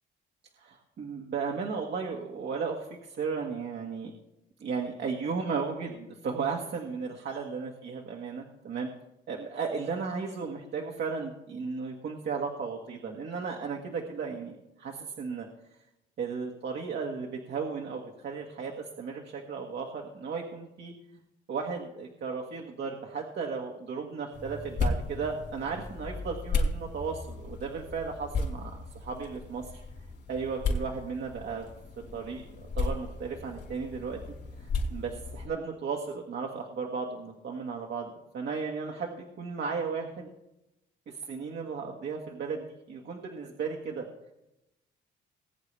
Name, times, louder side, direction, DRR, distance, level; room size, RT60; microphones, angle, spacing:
voice 1, 0.6-4.1 4.6-8.9 9.3-15.5 16.2-20.9 21.5-29.8 30.3-31.7 32.1-34.2 34.6-40.3 41.1-44.1, right 5 dB, 60° right, 0 dB, 1.6 m, -35 dB
sound 1, 24.3-35.5, left 3 dB, 60° left, 4.0 m, -35 dB
20.5 x 8.3 x 3.4 m, 0.88 s
cardioid pair, 90°, 20 cm